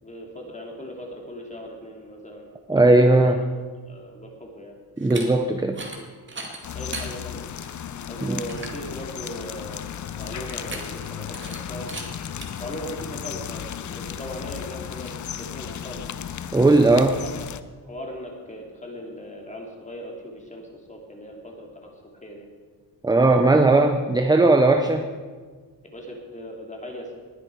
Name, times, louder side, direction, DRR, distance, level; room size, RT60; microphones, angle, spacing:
voice 1, 0.0-3.5 3.9-4.8 6.7-7.5 8.1-9.8 10.2-11.9 12.6-16.1 17.1-17.3 17.9-21.9 22.2-22.5 25.8-27.1, equal, 15° left, 0 dB, 2.7 m, -38 dB
voice 2, 2.7-3.4 5.0-5.8 8.2-8.4 16.5-17.2 23.0-25.1, right 2 dB, 10° right, 6 dB, 0.6 m, -17 dB
sound 1, 5.0-5.3 5.7-6.0 6.3-7.1 7.6-7.7 8.1-8.2 8.5-8.8 10.5-11.1 11.3-11.6 11.9-12.1 12.4-12.5, right 3 dB, 25° right, 2.2 m, -36 dB
sound 2, 6.6-17.6, left 8 dB, 45° left, 0.6 m, -35 dB
20.0 x 9.8 x 4.6 m, 1.5 s
wide cardioid pair, 135°, 41 cm